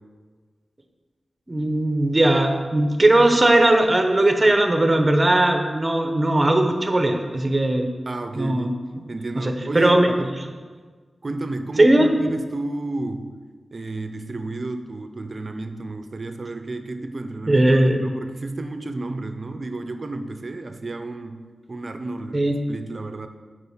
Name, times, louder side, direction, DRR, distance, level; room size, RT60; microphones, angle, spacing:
voice 1, 1.5-7.9 8.3-8.7 9.4-10.1 11.8-12.1 17.5-18.0 22.3-22.6, right 1 dB, 25° right, 5 dB, 1.0 m, -18 dB
voice 2, 8.1-8.8 9.1-10.5 11.2-13.4 13.7-23.3, right 2 dB, 45° right, 8 dB, 0.6 m, -32 dB
7.9 x 5.1 x 5.6 m, 1.5 s
wide cardioid pair, 85°, 0 cm